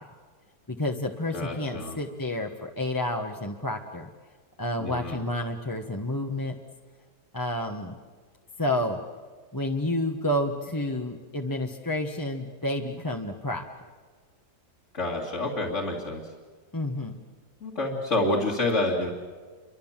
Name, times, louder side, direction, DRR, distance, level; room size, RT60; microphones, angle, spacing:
voice 1, 0.7-4.1 4.6-6.5 7.3-8.0 8.6-9.0 9.5-13.6 16.7-17.2, left 1 dB, 15° left, 3 dB, 1.2 m, -30 dB
voice 2, 1.3-2.0 4.8-5.2 14.9-16.2 17.6-19.1, left 2 dB, 45° left, -2 dB, 2.8 m, -28 dB
28.5 x 24.5 x 7.4 m, 1.6 s
omnidirectional pair, 1.7 m